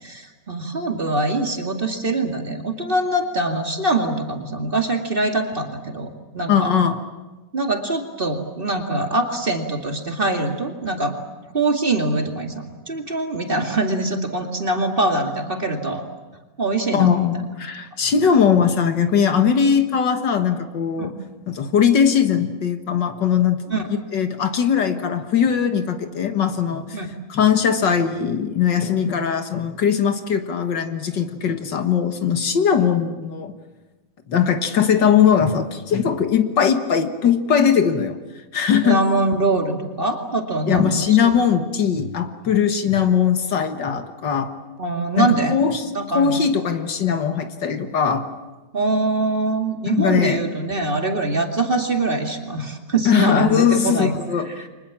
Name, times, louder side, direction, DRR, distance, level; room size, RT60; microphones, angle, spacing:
voice 1, 0.0-6.7 7.5-11.2 11.5-16.0 16.6-17.2 21.0-21.1 23.7-23.9 26.9-27.1 38.8-41.3 44.8-45.6 45.9-46.4 48.7-54.1 54.5-54.7, right 2 dB, 30° right, 3 dB, 2.4 m, -23 dB
voice 2, 6.5-7.0 16.9-21.1 21.5-23.8 24.1-27.0 27.3-33.5 34.3-38.2 38.5-39.0 40.7-44.5 45.2-45.9 46.1-48.3 50.0-50.4 53.1-54.5, left 7 dB, 70° left, 7 dB, 2.1 m, -20 dB
30.0 x 24.5 x 7.4 m, 1.2 s
omnidirectional pair, 2.0 m